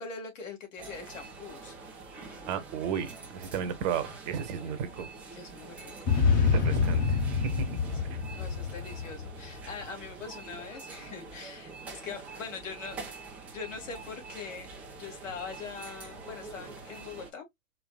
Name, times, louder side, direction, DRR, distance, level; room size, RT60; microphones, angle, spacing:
voice 1, 0.0-1.8 5.3-5.9 6.4-7.0 8.0-13.0 13.5-14.7 15.0-17.4, left 5 dB, 65° left, 2.4 m, -42 dB
sound 1, 0.8-17.3, right 3 dB, 5° right, 0.4 m, -45 dB
voice 2, 2.5-5.1 6.4-7.7 8.1-8.2, right 8 dB, 30° right, 1.0 m, -34 dB
sound 2, 6.1-9.6, left 5 dB, 20° left, 1.2 m, -26 dB
4.8 x 3.1 x 2.3 m
hypercardioid pair, 125°, 42 cm